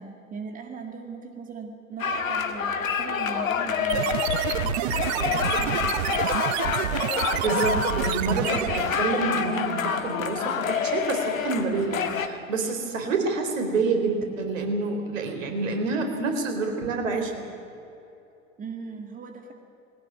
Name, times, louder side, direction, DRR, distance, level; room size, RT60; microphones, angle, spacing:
voice 1, 0.0-6.2 18.6-19.5, right 5 dB, 20° right, 5 dB, 2.1 m, -39 dB
sound 1, 2.0-12.3, left 6 dB, 70° left, 1.8 m, -28 dB
sound 2, 3.9-9.1, right 14 dB, 50° right, 0.9 m, -28 dB
sound 3, 4.3-9.9, left 4 dB, 90° left, 1.2 m, -38 dB
voice 2, 7.4-17.3, right 3 dB, 70° right, 5 dB, 4.2 m, -27 dB
21.0 x 18.0 x 9.6 m, 2.8 s
figure-of-eight pair, 90°, 41 cm